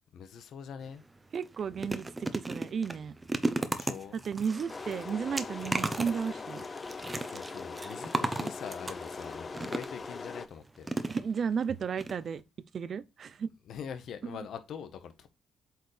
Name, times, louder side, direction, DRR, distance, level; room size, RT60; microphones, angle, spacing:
voice 1, 0.1-1.0 3.7-4.2 7.2-10.9 13.7-15.3, left 7 dB, 70° left, 1.2 m, -43 dB
sound 1, 0.8-1.0 1.3-10.1 10.8-11.6 12.0-12.1 12.4-12.5, right 2 dB, 20° right, 0.9 m, -35 dB
voice 2, 1.3-3.1 4.1-6.7 11.1-12.4 12.7-13.5 14.3-14.4, right 6 dB, 50° right, 0.6 m, -33 dB
sound 2, 4.7-10.5, left 4 dB, 35° left, 0.6 m, -41 dB
8.0 x 4.8 x 3.3 m
cardioid pair, 90°, 0 cm